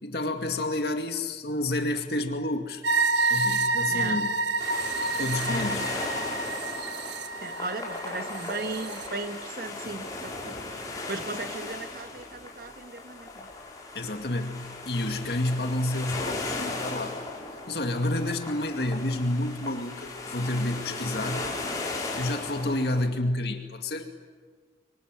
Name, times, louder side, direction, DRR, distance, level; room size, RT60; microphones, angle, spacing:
voice 1, 0.0-2.8 3.3-4.3 5.2-5.9 13.9-17.2 17.5-21.5 22.2-24.1, left 1 dB, 55° left, 5 dB, 2.2 m, -29 dB
sound 1, 2.8-9.1, right 3 dB, 65° right, 1.5 m, -28 dB
voice 2, 3.9-4.2 7.4-13.5, right 3 dB, 50° right, 8 dB, 1.5 m, -37 dB
sound 2, 4.6-23.1, left 2 dB, 20° left, 4.9 m, -36 dB
26.0 x 24.5 x 9.1 m, 1.5 s
head